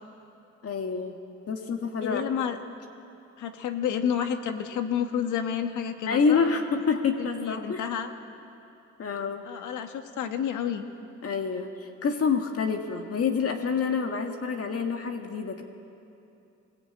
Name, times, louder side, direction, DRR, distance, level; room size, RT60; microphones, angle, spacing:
voice 1, 0.6-1.2 1.5-2.2 6.1-7.8 9.0-9.5 11.2-15.6, left 5 dB, 50° left, 4 dB, 1.8 m, -27 dB
voice 2, 2.0-2.6 3.4-6.4 7.2-8.1 9.4-10.8, left 8 dB, 80° left, 7 dB, 1.7 m, -30 dB
22.5 x 20.0 x 9.0 m, 2.7 s
cardioid pair, 90°, 30 cm